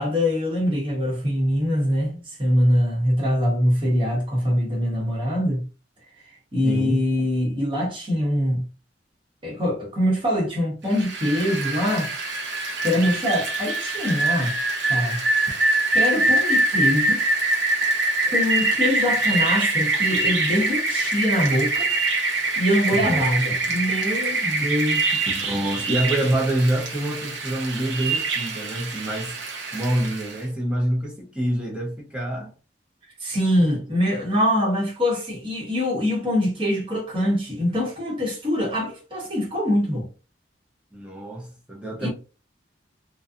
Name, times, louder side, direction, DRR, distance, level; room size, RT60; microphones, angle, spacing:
voice 1, 0.0-5.6 6.5-8.6 9.4-12.1 12.8-14.6 14.9-15.2 15.9-17.2 18.3-21.9 22.6-25.3 33.2-40.1 42.0-42.1, equal, 30° right, 1.0 m, -23 dB
voice 2, 6.6-7.0 22.9-23.2 25.3-29.4 29.7-32.5 40.9-42.1, right 1 dB, 5° right, 0.6 m, -26 dB
Rain, 10.9-30.4, right 2 dB, 75° right, 0.8 m, -24 dB
2.6 x 2.2 x 2.4 m
head